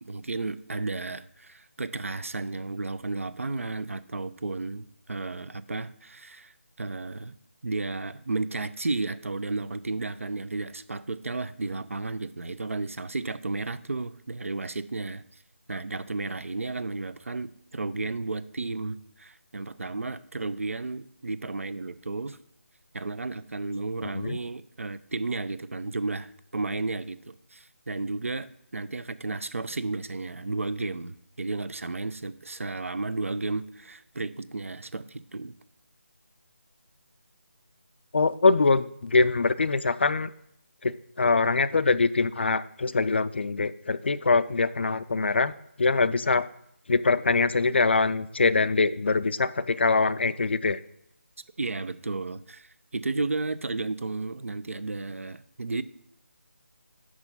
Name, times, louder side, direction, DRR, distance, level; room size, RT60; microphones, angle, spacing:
voice 1, 0.0-7.4 7.6-15.2 15.7-22.4 22.9-35.5 51.6-55.8, right 3 dB, 70° right, 15 dB, 0.5 m, -33 dB
voice 2, 38.1-40.3 40.8-45.5 45.8-46.5 46.9-50.8, left 4 dB, 50° left, 15 dB, 0.4 m, -23 dB
6.2 x 4.7 x 5.3 m, 0.75 s
figure-of-eight pair, 160°, 8 cm